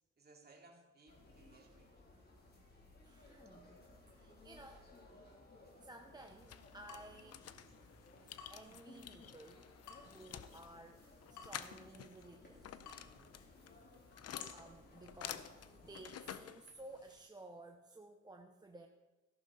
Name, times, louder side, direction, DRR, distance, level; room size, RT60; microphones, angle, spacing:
voice 1, 0.2-1.9 3.3-3.5, right 3 dB, 30° right, 1 dB, 2.6 m, -63 dB
sound 1, 1.1-16.2, left 2 dB, 30° left, 3.0 m, -61 dB
voice 2, 3.0-3.7 4.2-4.9 5.8-7.4 7.8-8.0 8.2-9.7 10.0-12.8 13.6-13.7 13.9-14.0 14.5-18.9, right 2 dB, 15° right, 4 dB, 0.8 m, -56 dB
sound 2, 6.2-17.3, left 9 dB, 55° left, 0.7 m, -51 dB
Water tap faucet / Drip, 6.5-15.8, left 6 dB, 75° left, 1.3 m, -60 dB
13.5 x 11.0 x 4.1 m, 1.2 s
cardioid pair, 90°, 30 cm